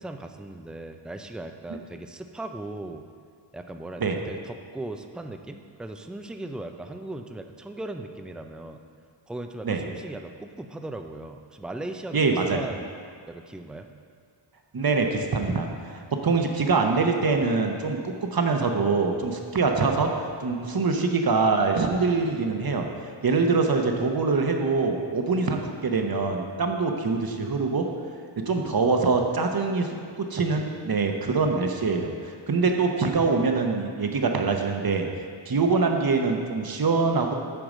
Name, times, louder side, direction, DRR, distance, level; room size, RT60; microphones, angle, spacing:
voice 1, 0.0-3.1 3.5-8.8 9.3-12.9 13.3-13.9, right 2 dB, ahead, 6 dB, 0.4 m, -38 dB
voice 2, 12.1-12.6 14.7-15.7 15.9-20.1 20.4-22.9 23.2-27.9 28.5-32.1 32.5-35.1 35.5-37.3, right 4 dB, 50° right, 3 dB, 0.9 m, -24 dB
8.8 x 4.7 x 6.4 m, 2.2 s
wide cardioid pair, 115°, 46 cm